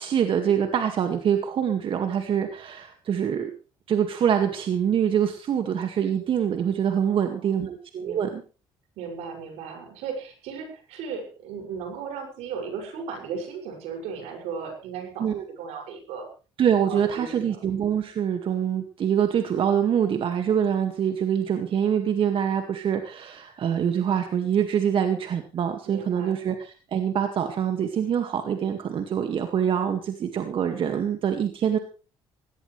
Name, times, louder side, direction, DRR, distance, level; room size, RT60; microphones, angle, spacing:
voice 1, 0.0-3.5 3.9-8.4 15.2-15.4 16.6-31.8, right 8 dB, 55° right, 6 dB, 2.0 m, -25 dB
voice 2, 7.0-7.6 8.0-8.3 9.0-15.2 15.6-16.3 16.9-17.6 25.8-26.4, right 6 dB, 80° right, 3 dB, 6.6 m, -36 dB
18.5 x 17.0 x 3.3 m, 0.35 s
supercardioid pair, 85°, 11 cm